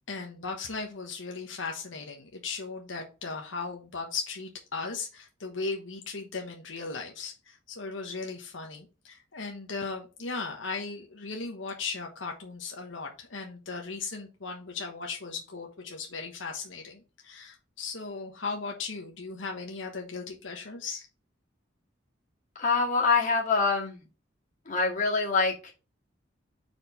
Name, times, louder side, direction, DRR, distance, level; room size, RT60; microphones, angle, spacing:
voice 1, 0.1-21.1, left 4 dB, 80° left, 2 dB, 1.3 m, -37 dB
voice 2, 22.6-24.0 24.7-25.7, left 4 dB, 40° left, -2 dB, 2.1 m, -25 dB
4.9 x 4.5 x 5.5 m, 0.31 s
head